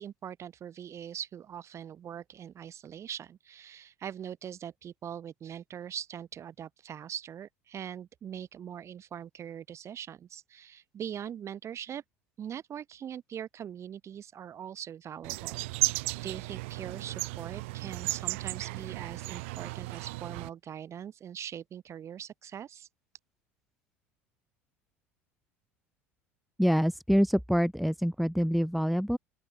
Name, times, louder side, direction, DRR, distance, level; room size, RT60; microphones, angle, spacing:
voice 1, 0.0-12.0 12.4-22.9, right 9 dB, 40° right, 8.0 m, -42 dB
sound 1, 15.2-20.5, right 24 dB, 70° right, 2.1 m, -34 dB
voice 2, 26.6-29.2, equal, ahead, 1.4 m, -26 dB
open air
hypercardioid pair, 70°, 7 cm